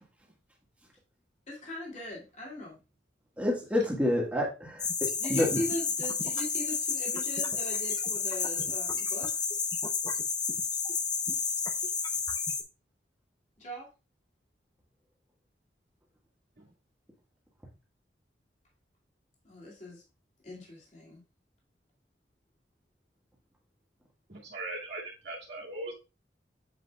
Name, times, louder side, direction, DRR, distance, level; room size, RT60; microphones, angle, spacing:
voice 1, 1.5-2.8 5.2-9.3 13.6-13.9 19.4-20.0 20.4-21.2, left 1 dB, 40° left, -4 dB, 2.4 m, -39 dB
voice 2, 3.4-5.6, left 1 dB, 10° right, -3 dB, 1.6 m, -28 dB
sound 1, 4.8-12.6, left 5 dB, 25° left, 0.6 m, -31 dB
voice 3, 24.3-25.9, right 2 dB, 65° right, -2 dB, 2.2 m, -39 dB
7.9 x 5.2 x 2.3 m, 0.30 s
head